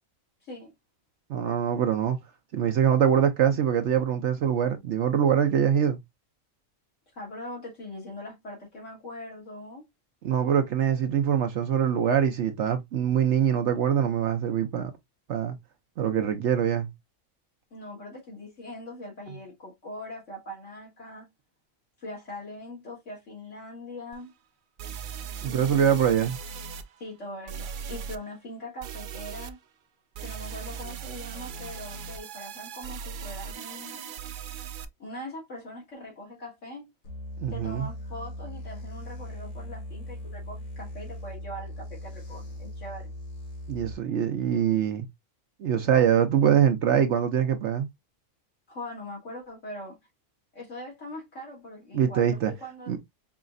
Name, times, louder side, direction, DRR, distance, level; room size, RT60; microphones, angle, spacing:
voice 1, 0.4-0.7 7.1-9.8 17.7-21.3 22.0-24.3 25.4-26.1 27.0-29.6 30.2-34.2 35.0-36.9 37.5-43.1 48.7-50.0 50.5-53.0, left 1 dB, 65° left, 2.2 m, -41 dB
voice 2, 1.3-2.2 2.5-6.0 10.2-14.9 15.3-15.6 16.0-16.9 25.4-26.4 37.4-37.9 43.7-45.1 45.6-47.9 51.9-52.5 52.9-53.0, right 8 dB, 65° right, 0.9 m, -24 dB
sound 1, 24.1-24.2 24.8-26.8 27.5-28.2 28.8-29.5 30.1-34.8, right 7 dB, 85° right, 0.4 m, -38 dB
sound 2, 37.0-43.9, left 1 dB, 80° left, 1.8 m, -39 dB
4.8 x 3.0 x 2.5 m
omnidirectional pair, 1.4 m